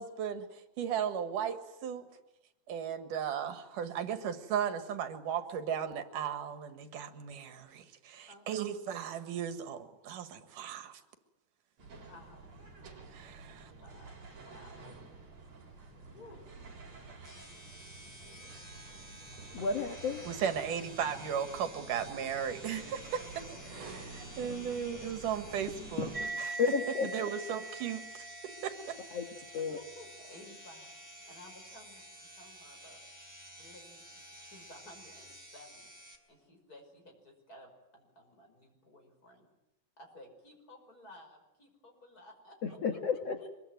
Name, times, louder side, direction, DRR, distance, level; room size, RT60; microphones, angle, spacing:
voice 1, 0.0-2.1 2.7-11.0 13.1-13.7 20.3-26.1 26.4-26.6 27.1-28.2 28.6-29.0, right 8 dB, 85° right, 9 dB, 3.3 m, -36 dB
voice 2, 8.3-8.7 11.9-12.5 13.5-14.8 16.1-16.5 18.2-18.3 29.6-33.0 33.6-35.9 36.3-39.5 40.0-42.8, left 1 dB, 25° left, 3 dB, 5.9 m, -55 dB
sound 1, 11.8-26.3, right 3 dB, 55° right, 5.8 m, -50 dB
sound 2, 17.2-36.2, equal, 5° left, 3.2 m, -52 dB
voice 3, 19.5-20.3 24.5-24.6 26.0-26.1 26.6-27.1 29.1-29.2 29.5-29.8 42.6-43.5, left 5 dB, 55° left, 5 dB, 2.4 m, -32 dB
sound 3, 26.1-33.0, right 3 dB, 15° right, 2.9 m, -44 dB
24.0 x 22.5 x 9.3 m, 0.92 s
omnidirectional pair, 3.6 m